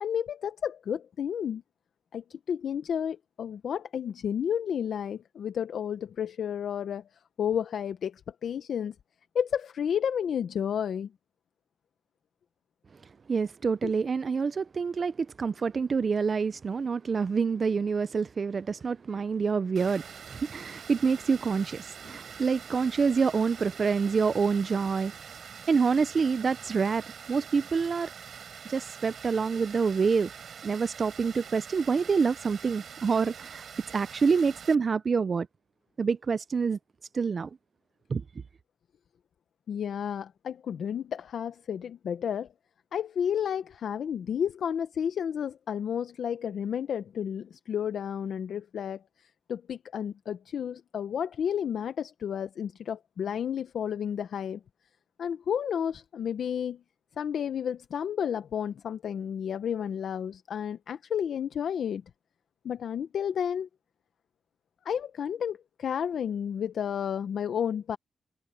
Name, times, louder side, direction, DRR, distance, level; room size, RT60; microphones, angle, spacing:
voice 1, 0.0-1.6 2.1-7.0 7.4-8.9 9.3-11.1 13.8-13.9 39.7-42.5 42.9-54.6 55.2-56.8 57.2-62.0 62.6-63.7 64.8-68.0, left 8 dB, 65° left, 0.6 m, -31 dB
voice 2, 13.3-25.1 25.7-27.0 27.3-28.1 28.7-30.3 30.6-33.6 33.9-35.5 36.0-36.8 37.1-37.5 38.1-38.2, right 5 dB, 35° right, 0.3 m, -27 dB
Water, 19.8-34.7, right 7 dB, 55° right, 7.5 m, -45 dB
wide cardioid pair, 175°, 0 cm